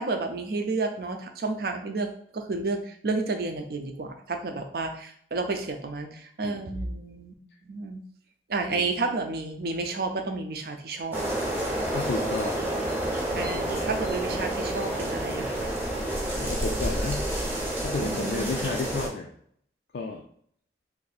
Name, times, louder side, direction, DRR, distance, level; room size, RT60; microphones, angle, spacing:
voice 1, 0.0-2.1 2.3-7.3 7.7-8.0 8.5-11.3 13.4-15.7 18.0-18.7, right 3 dB, 60° right, 5 dB, 0.5 m, -31 dB
voice 2, 6.4-6.9 8.7-8.9 11.9-12.7 16.4-17.3 17.8-19.3 19.9-20.2, left 4 dB, 60° left, 1 dB, 0.3 m, -32 dB
sound 1, 11.1-19.1, right 1 dB, 10° right, 0.7 m, -29 dB
2.7 x 2.6 x 4.1 m, 0.62 s
head